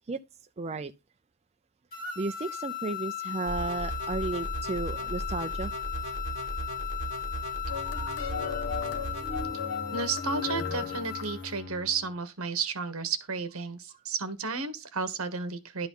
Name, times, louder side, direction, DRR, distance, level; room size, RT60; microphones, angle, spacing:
voice 1, 0.6-0.9 2.2-5.7, right 3 dB, 30° right, 0.5 m, -33 dB
sound 1, 1.9-11.5, left 10 dB, 40° left, 3.0 m, -37 dB
sound 2, 3.5-9.4, right 2 dB, 55° right, 1.7 m, -37 dB
sound 3, 7.7-12.1, left 5 dB, 60° left, 1.3 m, -36 dB
voice 2, 9.9-15.9, right 5 dB, 75° right, 1.3 m, -32 dB
11.5 x 4.0 x 5.4 m
head